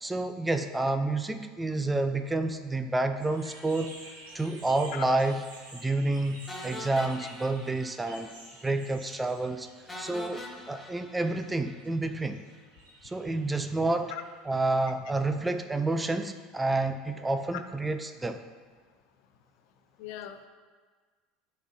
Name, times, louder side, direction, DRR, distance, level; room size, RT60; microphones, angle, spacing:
voice 1, 0.0-3.9 4.3-5.4 5.7-8.3 8.6-9.7 10.0-12.4 13.0-14.1 14.5-18.4, right 2 dB, 15° right, 8 dB, 0.4 m, -29 dB
sound 1, 3.2-14.6, right 1 dB, 85° right, 1.3 m, -51 dB
sound 2, 6.5-8.4 8.6-8.8 9.1-9.2 9.9-12.2, left 2 dB, 15° left, 1.0 m, -44 dB
voice 2, 20.0-20.5, left 12 dB, 70° left, 7 dB, 0.5 m, -39 dB
10.5 x 4.1 x 2.7 m, 1.5 s
hypercardioid pair, 85°, 0 cm